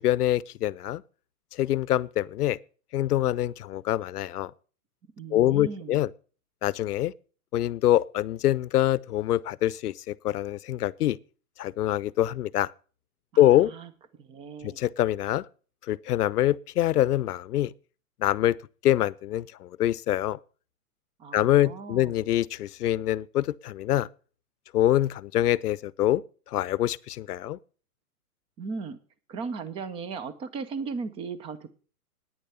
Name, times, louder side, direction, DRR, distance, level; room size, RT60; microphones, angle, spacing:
voice 1, 0.0-1.0 1.5-2.6 2.9-4.5 5.3-6.1 6.6-7.1 7.5-11.2 11.6-12.7 13.4-13.7 14.6-15.4 15.9-17.7 18.2-18.6 18.8-20.4 21.3-24.1 24.7-26.2 26.5-27.6, left 13 dB, 80° left, 0.7 m, -25 dB
voice 2, 5.2-6.0 13.3-13.9 14.2-14.8 21.2-22.2 28.6-29.0 29.3-31.7, right 5 dB, 15° right, 0.5 m, -37 dB
10.0 x 9.5 x 5.5 m
hypercardioid pair, 145°, 45 cm